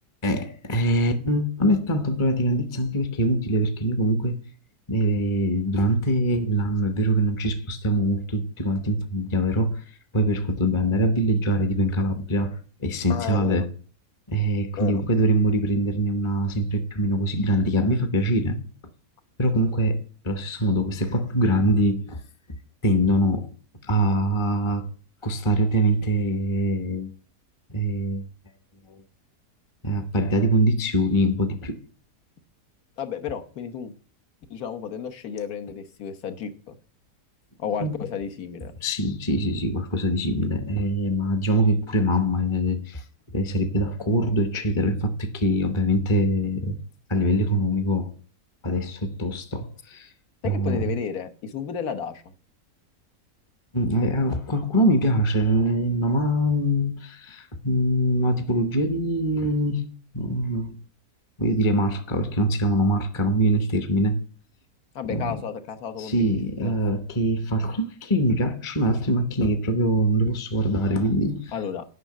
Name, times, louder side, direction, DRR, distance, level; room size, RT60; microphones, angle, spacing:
voice 1, 0.2-4.4 4.9-9.8 10.1-13.7 14.3-18.6 19.4-22.2 22.8-23.5 23.8-24.9 25.2-27.1 27.7-28.2 29.8-31.8 37.8-38.0 38.8-43.0 43.3-46.8 47.1-48.2 48.6-50.1 50.4-50.8 53.7-59.9 60.1-60.8 61.4-64.2 65.1-65.3 66.0-71.5, equal, 25° left, 0.8 m, -23 dB
voice 2, 13.1-13.6 14.8-15.0 33.0-33.9 34.5-36.8 37.6-38.7 50.4-52.3 64.9-66.7 71.5-71.8, left 7 dB, 65° left, 1.5 m, -32 dB
9.7 x 5.8 x 7.5 m
omnidirectional pair, 1.8 m